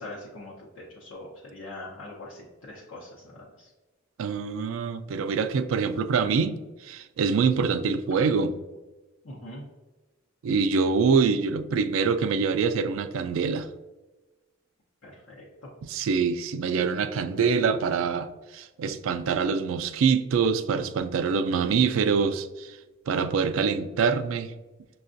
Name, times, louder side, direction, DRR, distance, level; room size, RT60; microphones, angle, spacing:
voice 1, 0.0-3.7 9.2-9.6 15.0-15.7, left 1 dB, 75° left, -6 dB, 0.8 m, -42 dB
voice 2, 4.2-6.5 6.8-8.6 10.4-13.7 15.8-22.8 23.1-24.5, right 5 dB, 80° right, 11 dB, 0.3 m, -25 dB
6.3 x 2.3 x 2.5 m, 1.2 s
head